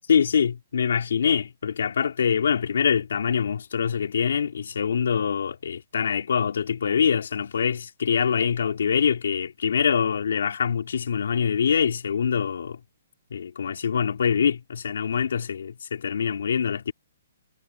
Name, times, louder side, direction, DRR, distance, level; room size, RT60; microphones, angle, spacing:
voice 1, 0.1-12.8 13.3-16.9, left 7 dB, 70° left, 3.7 m, -24 dB
hypercardioid pair, 165°, 0 cm